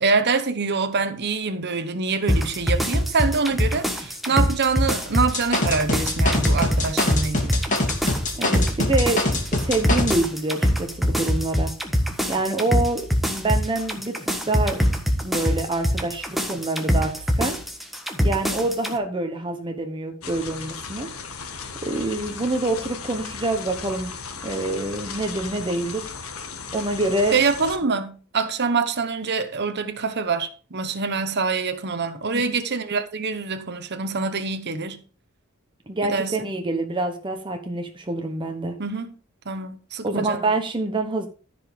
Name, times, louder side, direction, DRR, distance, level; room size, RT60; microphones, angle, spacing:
voice 1, 0.0-7.6 27.3-35.0 36.0-36.4 38.8-39.1 39.5-40.4, right 4 dB, 55° right, 1.0 m, -25 dB
sound 1, 2.3-18.9, equal, ahead, 1.5 m, -24 dB
sound 2, 5.3-10.2, left 1 dB, 40° left, 2.7 m, -24 dB
voice 2, 8.3-11.7 12.3-14.8 15.2-17.6 18.2-21.1 21.8-24.1 24.4-26.1 26.7-27.4 32.3-32.6 35.9-38.7 40.0-41.3, right 2 dB, 25° right, 1.0 m, -26 dB
sound 3, 20.2-27.8, left 5 dB, 90° left, 1.7 m, -36 dB
14.0 x 5.2 x 5.1 m
head